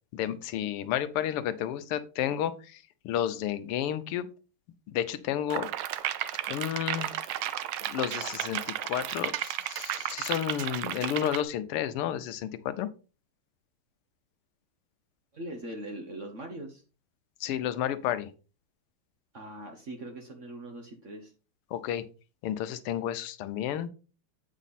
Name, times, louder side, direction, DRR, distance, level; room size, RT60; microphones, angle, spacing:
voice 1, 0.1-4.3 4.9-5.7 6.5-7.1 7.9-12.9 17.4-18.3 21.7-22.0 22.4-23.9, left 11 dB, 85° left, 12 dB, 1.6 m, -31 dB
sound 1, 5.5-11.4, right 12 dB, 80° right, 1.4 m, -33 dB
voice 2, 15.3-16.8 19.3-21.3, right 1 dB, 45° right, 4 dB, 1.1 m, -41 dB
8.3 x 5.0 x 4.1 m, 0.35 s
omnidirectional pair, 2.4 m